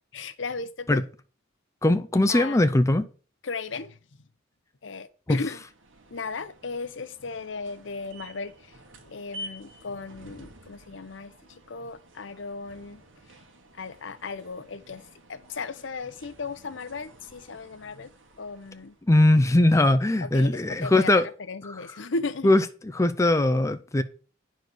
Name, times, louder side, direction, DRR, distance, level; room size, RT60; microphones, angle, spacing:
voice 1, 0.1-1.0 2.3-2.7 3.4-4.0 4.8-5.6 6.1-13.0 13.7-18.1 18.4-19.0 20.2-21.1 21.5-22.5, left 4 dB, 70° left, 0.7 m, -36 dB
voice 2, 1.8-3.1 5.3-5.4 19.1-21.3 22.4-22.6 22.9-24.0, left 1 dB, 15° left, 0.5 m, -20 dB
sound 1, 5.6-19.1, equal, 90° right, 1.8 m, -50 dB
9.7 x 4.6 x 6.2 m
head